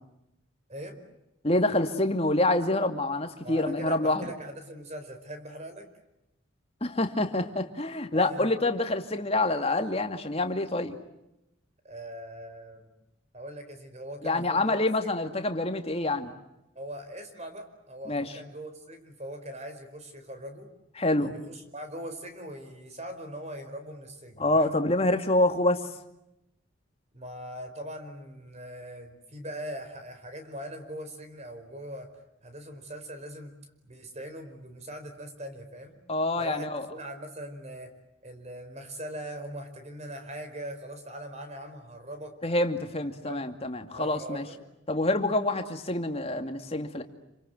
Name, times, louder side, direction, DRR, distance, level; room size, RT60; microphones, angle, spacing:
voice 1, 1.4-4.3 6.8-10.9 14.2-16.3 18.1-18.3 21.0-21.3 24.4-25.9 36.1-36.9 42.4-44.4 44.9-47.0, left 2 dB, 30° left, 6 dB, 2.4 m, -27 dB
voice 2, 3.4-5.9 8.1-8.5 11.8-12.9 13.3-14.8 16.7-20.7 21.2-24.8 27.1-32.1 32.4-33.5 33.8-35.9 36.4-37.9 38.2-42.4 42.9-43.5 43.9-44.6, right 1 dB, 35° right, 7 dB, 4.8 m, -41 dB
28.5 x 26.5 x 7.8 m, 0.87 s
head